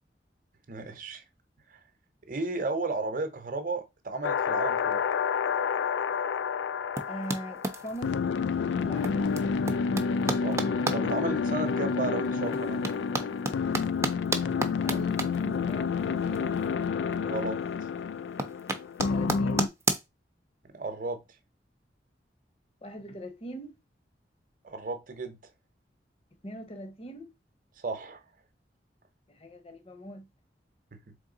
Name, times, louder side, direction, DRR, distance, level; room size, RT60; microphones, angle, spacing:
voice 1, 0.7-1.2 1.7-1.8 2.3-5.0 10.2-12.9 17.2-17.6 20.7-21.2 24.6-25.4 27.8-28.2 30.9-31.2, right 3 dB, 50° right, 0.8 m, -34 dB
sound 1, 4.2-19.7, left 5 dB, 85° left, 0.3 m, -29 dB
sound 2, 7.0-8.1 9.0-11.0 11.5-11.6 12.2-16.8 17.1-17.7 18.0-20.0, right 2 dB, 15° right, 0.5 m, -31 dB
voice 2, 7.1-8.2 8.8-9.3 14.8-16.5 19.1-19.7 22.8-23.8 26.4-27.3 29.3-30.3, equal, 35° left, 0.8 m, -41 dB
3.7 x 3.6 x 3.8 m
head